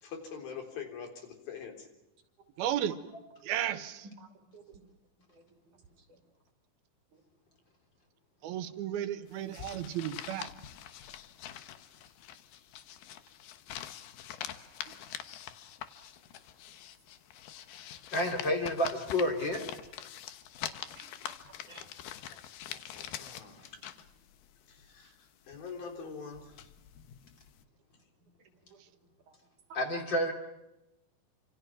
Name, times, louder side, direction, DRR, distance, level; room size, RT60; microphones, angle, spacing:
voice 1, 0.0-1.9 22.7-23.8 24.7-26.7, left 6 dB, 75° left, 4 dB, 5.5 m, -44 dB
voice 2, 2.6-2.9 3.5-4.0 8.4-10.5, right 11 dB, 85° right, 11 dB, 3.1 m, -33 dB
voice 3, 4.2-4.8 5.3-5.8 6.1-6.2 7.1-7.2 20.9-21.9 28.6-28.8 29.3-29.4 29.7-29.8, right 5 dB, 55° right, 4 dB, 4.7 m, -56 dB
sound 1, 9.3-25.2 25.5-27.6, left 11 dB, 90° left, 3.2 m, -45 dB
voice 4, 18.1-19.7 29.7-30.3, left 1 dB, 30° left, 4 dB, 3.4 m, -29 dB
28.5 x 27.0 x 6.1 m, 0.93 s
omnidirectional pair, 4.3 m